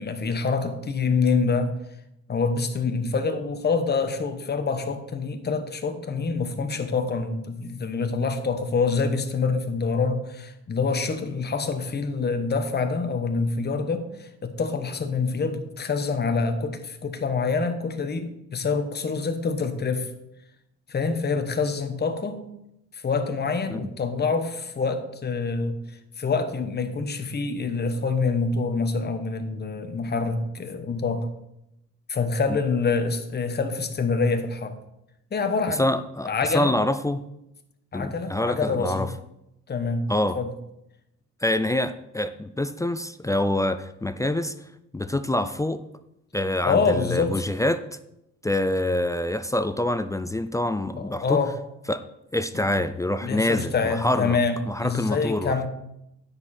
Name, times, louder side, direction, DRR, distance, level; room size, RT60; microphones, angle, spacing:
voice 1, 0.0-1.7 2.3-20.1 20.9-22.4 22.9-25.8 26.2-31.3 32.1-34.8 35.3-35.8 36.2-36.8 37.9-39.1 39.7-40.0 40.3-40.5 46.6-47.3 51.0-51.5 52.5-52.6 53.2-54.5 54.8-55.7, left 4 dB, 35° left, 7 dB, 1.1 m, -26 dB
voice 2, 35.8-37.2 37.9-39.1 40.1-40.4 41.4-44.5 44.9-45.8 46.3-47.8 48.4-51.4 51.9-52.0 52.3-54.4 54.7-55.7, left 1 dB, 10° left, 11 dB, 0.4 m, -26 dB
9.5 x 6.8 x 4.3 m, 0.84 s
cardioid pair, 90°, 30 cm